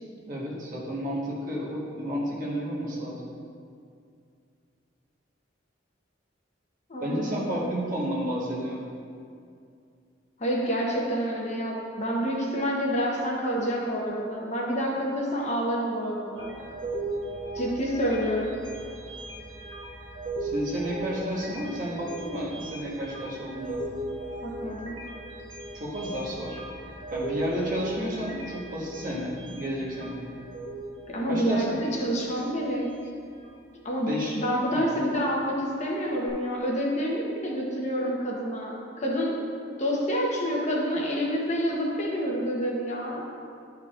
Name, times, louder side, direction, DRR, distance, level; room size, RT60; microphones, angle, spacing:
voice 1, 0.3-3.2 7.0-8.8 20.4-23.8 25.7-26.6 27.1-30.2 31.3-31.7 34.1-34.4 34.7-34.8, equal, 45° right, -5 dB, 1.3 m, -31 dB
voice 2, 6.9-7.6 10.4-16.5 17.5-18.6 24.4-25.0 31.1-32.9 33.8-39.4 39.8-43.2, equal, 35° left, -3 dB, 0.9 m, -28 dB
sound 1, 16.4-33.6 34.0-34.2 36.3-36.4, right 2 dB, 80° right, 1.0 m, -38 dB
10.5 x 4.7 x 2.5 m, 2.4 s
head